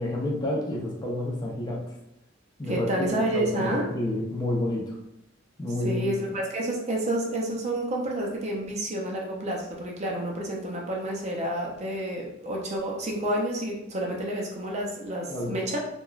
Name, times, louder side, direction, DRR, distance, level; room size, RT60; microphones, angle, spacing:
voice 1, 0.0-1.8 2.6-2.9 3.3-5.0 5.6-6.1 15.3-15.6, left 1 dB, 20° left, -3 dB, 0.5 m, -29 dB
voice 2, 2.7-3.9 5.8-15.8, right 1 dB, 35° right, -1 dB, 0.4 m, -29 dB
3.0 x 2.2 x 2.3 m, 0.87 s
head